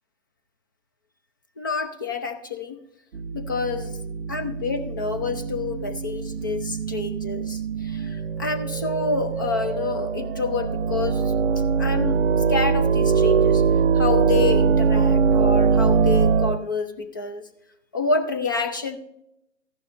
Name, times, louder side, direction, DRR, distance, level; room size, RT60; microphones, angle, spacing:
voice 1, 1.6-2.8 3.3-4.0 4.3-11.3 11.8-13.6 13.9-17.5 17.9-19.0, left 4 dB, 20° left, 8 dB, 0.3 m, -28 dB
sound 1, 3.1-16.6, right 6 dB, 75° right, 0.7 m, -22 dB
14.0 x 11.0 x 2.5 m, 0.81 s
figure-of-eight pair, 125°, 37 cm